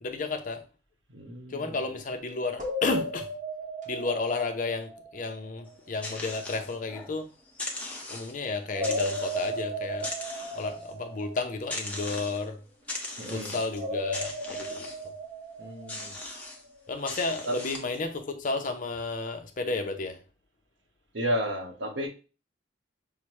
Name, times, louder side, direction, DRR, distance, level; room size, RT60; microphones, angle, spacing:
voice 1, 0.0-0.6 1.5-3.3 3.9-7.3 8.1-10.1 10.5-12.6 13.3-14.9 16.9-20.2, left 3 dB, 45° left, 0.6 m, -32 dB
voice 2, 1.1-1.8 13.2-13.5 15.6-16.2 17.5-17.6 21.1-22.1, equal, 75° right, 0.9 m, -32 dB
sound 1, 2.6-5.6 8.7-12.0 13.7-16.5, equal, 45° right, 0.9 m, -35 dB
sound 2, 5.7-7.2 7.5-8.4 8.8-9.6 10.0-10.9 11.7-12.5 12.9-13.8 14.1-15.1 15.9-16.6 17.1-18.0, left 2 dB, 5° left, 0.7 m, -39 dB
5.7 x 2.1 x 3.0 m
head